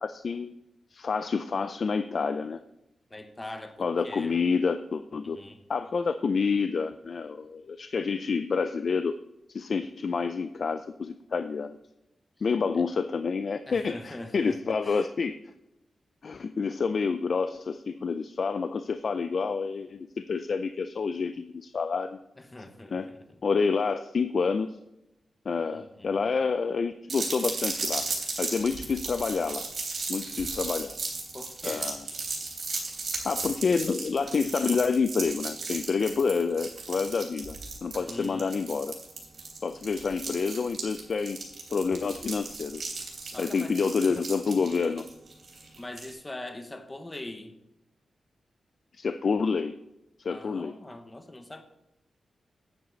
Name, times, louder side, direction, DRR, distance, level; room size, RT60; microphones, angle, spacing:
voice 1, 0.0-0.5 0.9-2.6 3.8-5.4 5.7-9.2 9.5-11.8 12.4-15.3 16.2-22.2 22.9-23.1 23.4-24.7 25.5-28.1 28.4-29.7 30.1-31.0 31.6-32.0 33.2-38.9 39.6-41.4 41.7-43.0 43.4-45.0 48.9-49.8 50.2-50.7, left 5 dB, 55° left, 10 dB, 0.4 m, -28 dB
voice 2, 3.1-4.4 5.2-5.6 12.7-12.8 13.7-15.0 22.4-23.4 25.7-26.2 31.3-31.9 38.1-38.6 43.3-43.9 45.8-47.5 50.3-51.6, left 1 dB, 20° left, 7 dB, 1.0 m, -42 dB
sound 1, 27.1-46.1, right 3 dB, 55° right, 3.5 m, -36 dB
9.7 x 9.5 x 4.0 m, 0.87 s
wide cardioid pair, 115°, 0 cm